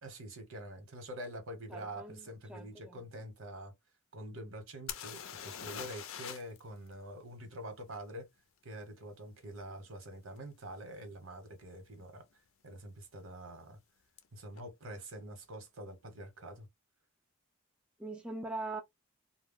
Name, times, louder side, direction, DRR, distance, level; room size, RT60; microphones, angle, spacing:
voice 1, 0.0-3.7 4.1-8.3 8.6-12.2 12.6-13.8 14.3-16.7, right 1 dB, 80° right, 1.1 m, -46 dB
voice 2, 1.7-3.2 9.7-9.8 18.0-18.8, right 2 dB, 5° right, 0.3 m, -42 dB
sound 1, 4.9-6.6 6.9-7.0 10.4-10.5 11.1-11.3 11.5-12.1 14.2-14.3 14.5-14.6, left 8 dB, 75° left, 0.5 m, -43 dB
2.2 x 2.0 x 3.5 m
head